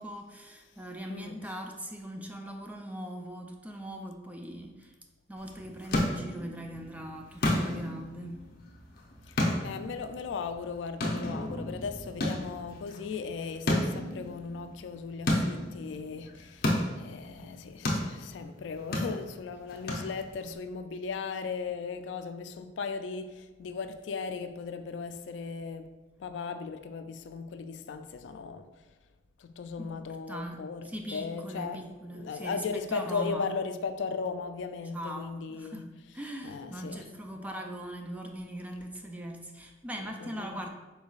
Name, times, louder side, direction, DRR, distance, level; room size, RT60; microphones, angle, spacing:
voice 1, 0.0-4.9 5.3-8.4 29.8-33.5 34.9-40.7, right 1 dB, 10° right, 0.4 m, -40 dB
sound 1, 5.4-20.6, left 1 dB, 55° left, 0.7 m, -33 dB
voice 2, 9.6-25.9 26.2-28.7 29.4-31.8 32.1-35.9 36.4-37.1 40.0-40.6, left 5 dB, 80° left, 0.3 m, -37 dB
5.5 x 3.9 x 2.4 m
head